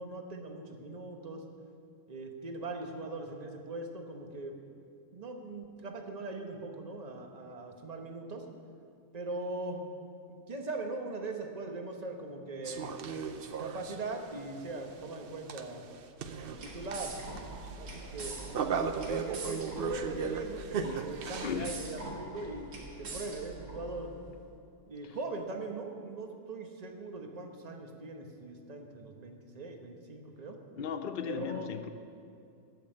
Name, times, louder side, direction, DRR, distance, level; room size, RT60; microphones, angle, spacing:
voice 1, 0.0-1.4 2.1-4.6 5.1-8.5 9.1-9.8 10.3-12.9 13.6-15.8 16.4-17.5 17.7-18.6 19.1-22.7 23.0-24.1 24.9-30.6 31.3-31.7, right 2 dB, 30° right, 3 dB, 1.0 m, -40 dB
sound 1, 12.6-21.7, right 6 dB, 55° right, 0.6 m, -38 dB
sound 2, 16.1-24.3, right 2 dB, 80° right, 2.0 m, -44 dB
voice 2, 20.8-21.7 30.8-31.9, left 7 dB, 55° left, 7 dB, 0.5 m, -37 dB
14.0 x 5.9 x 8.9 m, 2.5 s
omnidirectional pair, 1.6 m